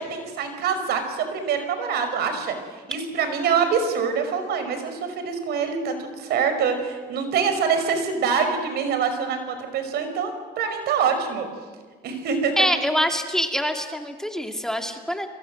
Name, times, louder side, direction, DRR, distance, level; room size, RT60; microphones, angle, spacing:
voice 1, 0.0-2.6 2.9-11.5 12.0-12.7, right 6 dB, 75° right, 8 dB, 5.3 m, -25 dB
voice 2, 12.6-15.3, equal, 5° left, 4 dB, 2.3 m, -25 dB
29.5 x 23.0 x 7.7 m, 1.4 s
cardioid pair, 110°, 17 cm